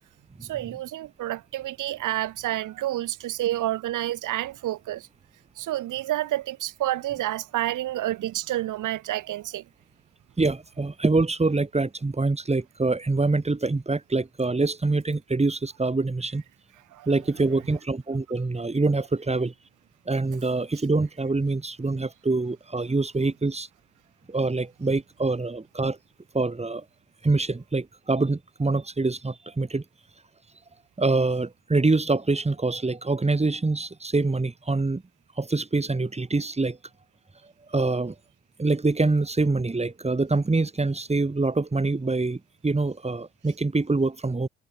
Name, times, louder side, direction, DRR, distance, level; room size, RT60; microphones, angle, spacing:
voice 1, 0.5-5.1 5.6-9.6 16.9-17.1, right 14 dB, 55° right, 4.2 m, -29 dB
voice 2, 10.4-16.4 17.0-19.5 20.1-23.7 24.3-26.0 26.3-26.8 27.2-29.8 31.0-35.0 35.4-36.8 37.7-38.1 38.6-44.5, right 3 dB, 15° right, 6.8 m, -25 dB
figure-of-eight pair, 50°, 37 cm